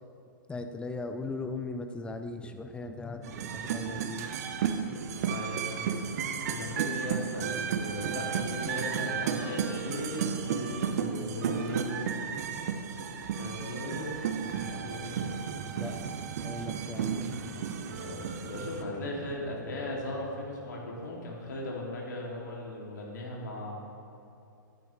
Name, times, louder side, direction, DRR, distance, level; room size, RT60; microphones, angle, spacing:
voice 1, 0.5-4.4 15.8-15.9 16.4-17.3, left 3 dB, 10° left, 7 dB, 0.6 m, -38 dB
sound 1, 3.2-18.8, right 7 dB, 50° right, 0.8 m, -33 dB
voice 2, 5.3-6.0 6.5-11.9 13.4-14.2 14.7-15.3 18.0-23.8, left 1 dB, 65° left, -2 dB, 2.5 m, -38 dB
sound 2, 14.2-21.0, right 2 dB, 30° right, 2.1 m, -47 dB
15.0 x 9.0 x 3.2 m, 2.7 s
figure-of-eight pair, 110°, 11 cm